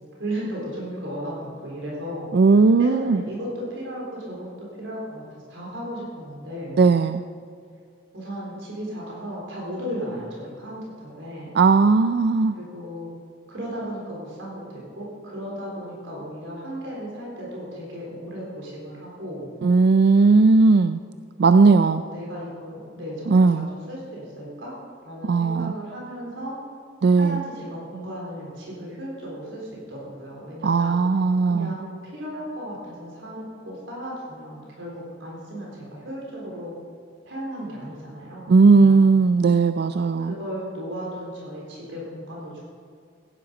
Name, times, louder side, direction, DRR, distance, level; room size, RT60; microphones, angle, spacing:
voice 1, 0.2-2.3 2.8-5.2 5.5-6.8 8.1-11.6 12.5-13.1 13.5-19.5 21.5-24.7 25.0-26.6 27.1-31.0 31.4-36.8 37.2-39.1 40.2-42.6, equal, 85° right, -4 dB, 4.3 m, -35 dB
voice 2, 2.3-3.2 6.8-7.2 11.5-12.6 19.6-21.0 21.4-22.0 23.3-23.7 25.2-25.7 27.0-27.4 30.6-31.7 38.5-40.3, right 4 dB, 60° right, 10 dB, 0.4 m, -17 dB
16.0 x 10.5 x 5.3 m, 2.3 s
head